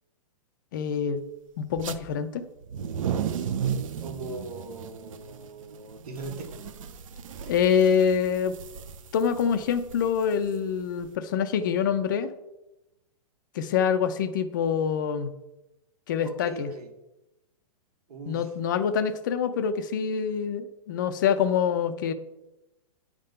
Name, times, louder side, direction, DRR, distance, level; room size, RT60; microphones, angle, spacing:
voice 1, 0.7-1.2 1.6-2.5 7.5-8.5 9.1-12.3 13.5-15.3 16.1-16.7 18.3-22.1, left 7 dB, 30° left, 10 dB, 0.4 m, -25 dB
sound 1, 1.7-2.0 2.6-11.1, right 8 dB, 60° right, 0.6 m, -35 dB
voice 2, 4.0-6.7 16.2-16.9 18.1-18.5, right 2 dB, 85° right, 5 dB, 1.8 m, -40 dB
9.4 x 3.7 x 6.7 m, 0.96 s
hypercardioid pair, 170°, 19 cm